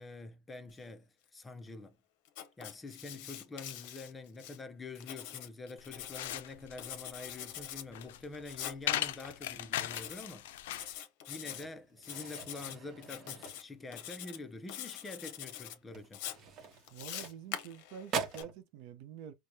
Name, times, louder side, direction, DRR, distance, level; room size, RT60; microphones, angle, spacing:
voice 1, 0.0-2.0 2.6-10.5 11.3-16.2, left 3 dB, 15° left, 0.5 m, -46 dB
Writing, 2.3-4.6 5.0-6.4 6.8-7.9 8.5-8.8 9.9-10.3 10.7-11.6 12.0-12.8 13.0-13.6 13.9-14.4 14.7-15.8 16.1-18.4, left 11 dB, 65° left, 0.8 m, -44 dB
sound 1, 5.8-10.9, left 13 dB, 85° left, 0.4 m, -38 dB
sound 2, 11.4-14.1 14.4-14.7 15.1-15.2 15.8-17.8 18.1-18.6, right 6 dB, 40° right, 0.9 m, -42 dB
voice 2, 16.9-19.3, right 9 dB, 60° right, 0.7 m, -47 dB
4.7 x 2.2 x 2.7 m
supercardioid pair, 130°, 0 cm